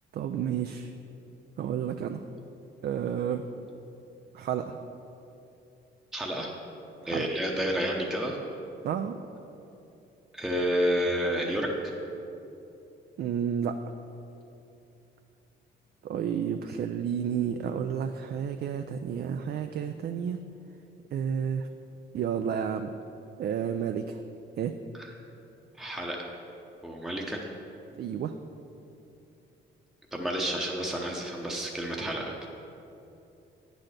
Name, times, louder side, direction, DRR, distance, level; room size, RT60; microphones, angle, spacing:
voice 1, 0.1-0.9 1.6-2.2 2.8-3.4 4.3-4.8 7.0-7.3 8.8-9.2 13.2-13.8 16.0-20.4 21.1-21.7 22.1-22.9 23.4-24.2 24.6-24.7 28.0-28.3, right 8 dB, 55° right, 7 dB, 0.4 m, -31 dB
voice 2, 6.1-6.5 7.0-8.4 10.3-11.9 24.9-25.1 25.8-26.3 26.8-27.4 30.1-32.5, equal, ahead, -1 dB, 0.8 m, -30 dB
8.7 x 4.1 x 6.5 m, 2.9 s
cardioid pair, 90°, 20 cm